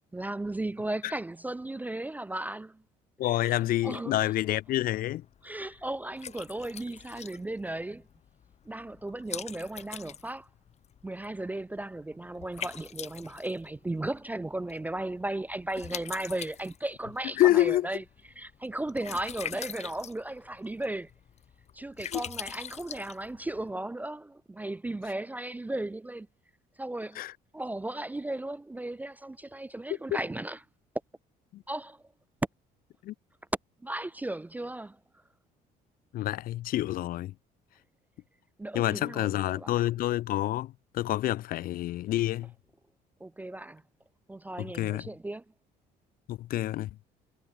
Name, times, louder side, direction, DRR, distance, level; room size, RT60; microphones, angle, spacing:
voice 1, 0.1-2.8 3.3-4.3 5.4-8.1 8.7-10.5 11.0-18.0 18.4-21.1 21.7-26.3 26.8-27.2 27.5-30.6 31.7-32.0 33.8-35.0 38.6-39.7 43.2-43.8 44.3-45.4, right 1 dB, 10° right, 0.3 m, -36 dB
voice 2, 3.2-5.2 17.4-17.9 22.0-22.2 27.2-27.3 30.1-30.2 31.5-31.6 33.0-33.1 36.1-37.3 38.7-42.5 44.6-45.1 46.3-46.9, left 14 dB, 60° left, 0.4 m, -28 dB
Liquid, 4.3-23.7, left 8 dB, 40° left, 0.8 m, -45 dB
cardioid pair, 110°, 17 cm